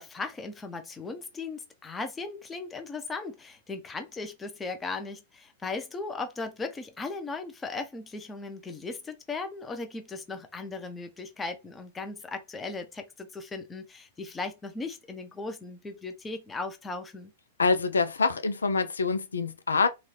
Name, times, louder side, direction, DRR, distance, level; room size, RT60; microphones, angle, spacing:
voice 1, 0.0-17.3, left 3 dB, 15° left, 0.7 m, -37 dB
voice 2, 17.6-19.9, left 4 dB, 85° left, 0.5 m, -25 dB
2.6 x 2.4 x 3.3 m
hypercardioid pair, 105°, 0 cm